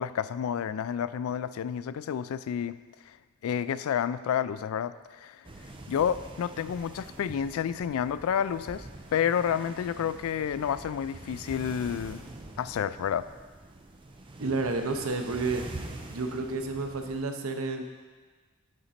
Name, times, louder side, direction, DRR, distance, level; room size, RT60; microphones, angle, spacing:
voice 1, 0.0-2.8 3.4-5.4 5.9-12.2 12.6-13.3, left 8 dB, 80° left, 14 dB, 0.3 m, -30 dB
sound 1, 5.4-17.2, right 2 dB, 25° right, 0.6 m, -45 dB
voice 2, 14.4-15.6 16.1-17.8, right 3 dB, 80° right, 5 dB, 0.8 m, -30 dB
8.7 x 5.2 x 4.2 m, 1.4 s
head